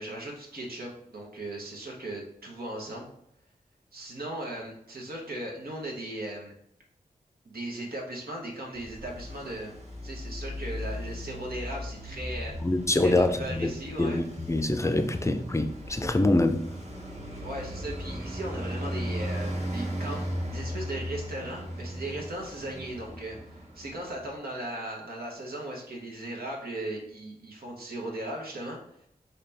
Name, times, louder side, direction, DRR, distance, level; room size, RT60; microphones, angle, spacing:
voice 1, 0.0-3.1 3.9-6.5 7.4-9.7 10.0-12.5 13.0-14.2 17.4-28.8, right 1 dB, 80° right, 1.1 m, -37 dB
Traffic noise roadway noise, 8.7-24.2, equal, 45° right, 1.2 m, -37 dB
voice 2, 12.6-13.7 14.0-16.7, left 2 dB, 20° left, 0.4 m, -25 dB
4.1 x 2.8 x 3.4 m
cardioid pair, 45°, 15 cm